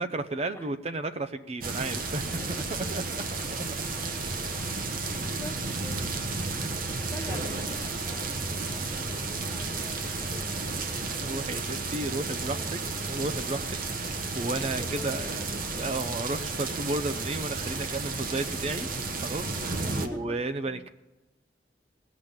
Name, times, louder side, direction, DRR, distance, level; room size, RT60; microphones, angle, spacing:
voice 1, 0.0-2.3 2.6-3.2 6.2-6.7 11.2-15.5 15.8-18.9 19.2-20.9, right 2 dB, 35° right, 9 dB, 0.6 m, -33 dB
sound 1, 1.6-20.1, right 3 dB, 50° right, 1.1 m, -32 dB
voice 2, 2.3-3.5 4.1-4.2 5.0-6.1 7.1-11.6 12.0-13.2 13.6-13.7 14.4-15.7 19.8-20.4 20.6-20.9, left 1 dB, 15° left, 6 dB, 0.8 m, -46 dB
18.5 x 6.1 x 8.9 m, 1.1 s
head